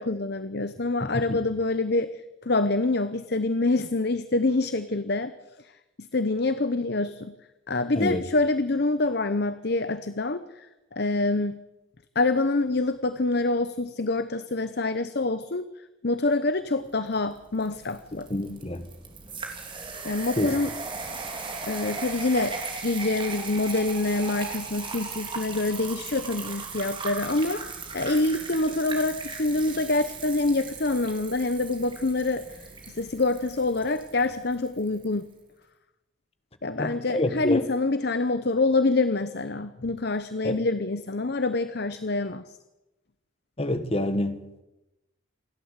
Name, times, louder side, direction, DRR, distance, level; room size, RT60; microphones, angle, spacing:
voice 1, 0.0-5.3 6.0-7.3 7.7-10.7 10.9-11.6 12.1-15.6 16.0-18.3 20.0-20.7 21.6-27.7 27.9-32.4 32.9-35.3 36.6-42.4, left 2 dB, 50° left, 0.8 m, -26 dB
soda pour, 17.1-35.1, right 4 dB, 25° right, 3.2 m, -38 dB
voice 2, 18.3-18.9 20.4-20.6 36.8-37.7 40.4-40.6 43.6-44.6, left 1 dB, 30° left, 1.4 m, -27 dB
28.0 x 12.0 x 8.2 m
head